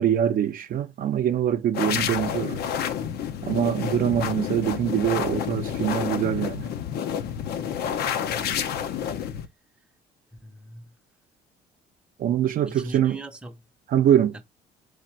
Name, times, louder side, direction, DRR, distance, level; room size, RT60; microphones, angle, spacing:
voice 1, 0.0-2.6 3.4-6.7 12.2-13.2 13.9-14.4, right 10 dB, 55° right, 0.6 m, -24 dB
sound 1, 1.7-9.5, left 8 dB, 70° left, 0.7 m, -29 dB
voice 2, 8.3-8.7 10.4-10.9 12.7-13.5, right 2 dB, 5° right, 0.7 m, -40 dB
4.8 x 2.5 x 4.3 m
cardioid pair, 110°, 17 cm